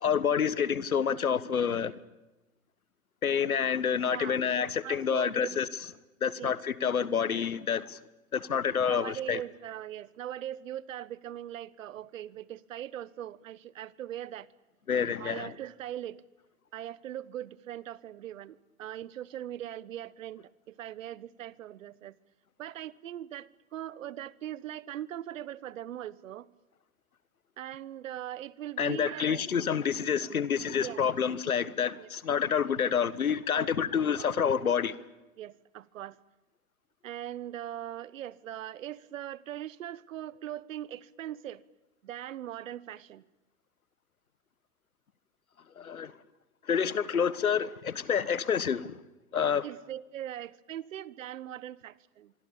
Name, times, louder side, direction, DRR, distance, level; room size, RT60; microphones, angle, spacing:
voice 1, 0.0-2.0 3.2-5.7 6.2-8.0 8.3-9.4 14.9-15.5 28.8-35.0 45.8-46.1 46.6-49.0 49.3-49.6, left 7 dB, 85° left, 1.4 m, -28 dB
voice 2, 4.0-5.6 6.4-6.6 8.9-14.5 15.2-16.2 16.7-22.2 22.6-26.5 27.6-29.4 30.2-30.3 30.8-31.1 32.0-32.1 33.5-33.7 34.2-34.3 35.4-36.2 37.0-41.6 42.0-43.3 49.6-52.3, right 11 dB, 65° right, 1.3 m, -40 dB
26.0 x 24.0 x 8.8 m
hypercardioid pair, 110°, 42 cm